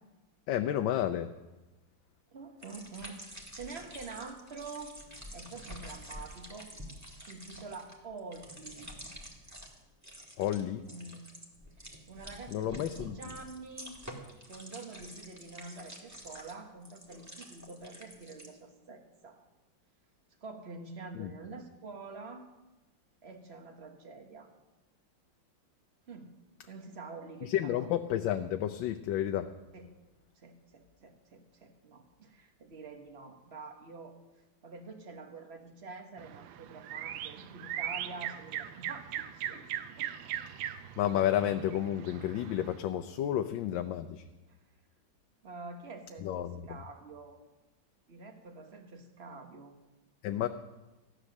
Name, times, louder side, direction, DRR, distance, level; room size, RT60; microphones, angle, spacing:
voice 1, 0.5-1.3 10.4-10.8 12.5-13.2 21.1-21.3 27.4-29.5 41.0-44.2 46.2-46.7 50.2-50.5, left 11 dB, 80° left, 8 dB, 1.3 m, -31 dB
voice 2, 2.3-4.9 5.3-6.7 7.3-8.9 10.6-11.3 11.8-14.0 14.5-19.4 20.4-22.5 23.2-24.5 26.1-26.3 26.7-27.8 29.7-30.0 30.4-34.1 34.6-39.7 40.0-40.1 44.5-44.6 45.4-47.4 48.1-49.8, right 3 dB, 35° right, 5 dB, 1.4 m, -47 dB
sound 1, 2.6-9.8 10.0-10.6 10.9-18.5, equal, 10° right, 1.7 m, -48 dB
sound 2, 36.2-42.8, right 11 dB, 85° right, 1.4 m, -40 dB
14.5 x 10.0 x 6.4 m, 1.1 s
omnidirectional pair, 2.1 m